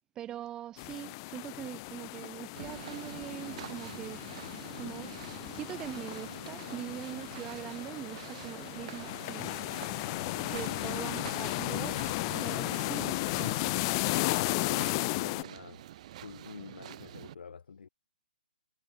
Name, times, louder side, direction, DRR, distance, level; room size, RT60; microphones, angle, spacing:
voice 1, 0.2-4.2 4.8-5.1 5.5-9.6 10.5-12.0 12.3-13.6, right 12 dB, 15° right, 0.4 m, -42 dB
sound 1, 0.8-15.4, left 25 dB, 30° left, 1.3 m, -35 dB
sound 2, 2.5-17.3, right 13 dB, 40° right, 1.5 m, -47 dB
voice 2, 14.2-15.8 16.2-17.9, left 6 dB, 65° left, 7.2 m, -47 dB
hypercardioid pair, 145°, 5 cm